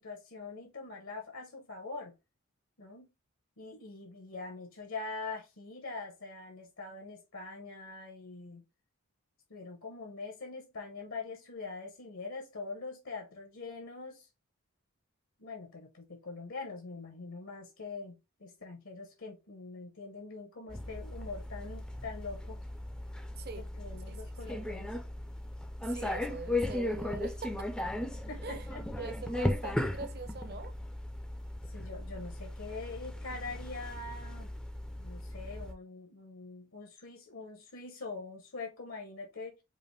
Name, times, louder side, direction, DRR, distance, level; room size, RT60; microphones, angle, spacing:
voice 1, 0.0-2.2 2.8-3.1 3.6-8.6 9.5-14.3 15.4-22.6 23.8-25.0 28.3-28.9 31.6-34.5 35.0-39.6, left 3 dB, 75° left, 1.0 m, -43 dB
sound 1, 20.7-35.7, left 1 dB, 5° left, 0.4 m, -37 dB
voice 2, 23.4-23.7 24.1-24.2 25.8-27.7 28.4-28.7 29.0-30.7, right 4 dB, 45° right, 0.6 m, -43 dB
4.9 x 2.5 x 3.2 m
head